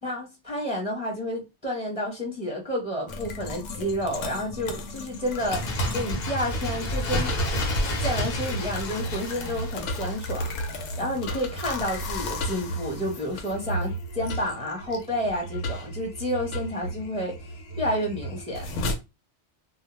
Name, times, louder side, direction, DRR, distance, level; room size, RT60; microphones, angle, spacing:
voice 1, 0.0-5.6 5.9-7.3 7.8-17.3 17.8-18.7, equal, 5° right, 0.8 m, -30 dB
sound 1, 3.1-19.0, left 1 dB, 90° left, 0.9 m, -34 dB
Bird, 5.2-10.8 11.1-11.2, equal, 60° left, 0.8 m, -30 dB
2.3 x 2.1 x 3.0 m
omnidirectional pair, 1.2 m